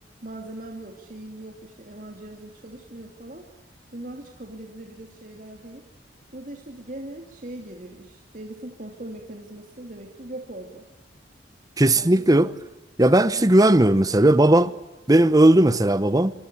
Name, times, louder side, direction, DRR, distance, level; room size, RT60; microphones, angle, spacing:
voice 1, 0.2-3.5 3.9-5.8 6.3-10.9 11.9-12.3 13.4-14.0, right 1 dB, 45° right, 2.8 m, -40 dB
voice 2, 11.8-12.5 13.0-14.7 15.1-16.3, right 1 dB, 20° right, 0.9 m, -17 dB
25.5 x 24.5 x 6.9 m
head